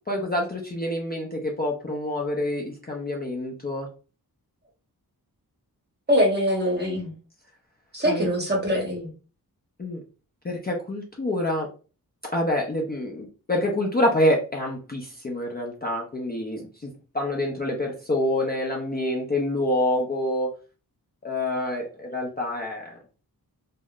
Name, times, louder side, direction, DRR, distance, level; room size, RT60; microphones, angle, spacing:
voice 1, 0.1-3.9 8.1-8.3 9.8-10.0 10.4-11.7 12.3-16.9 17.1-20.5 21.2-23.0, left 1 dB, 25° left, -2 dB, 0.4 m, -27 dB
voice 2, 6.1-7.1 7.9-9.1, equal, 25° right, 0 dB, 0.8 m, -23 dB
3.3 x 2.1 x 2.3 m, 0.35 s
wide cardioid pair, 170°, 37 cm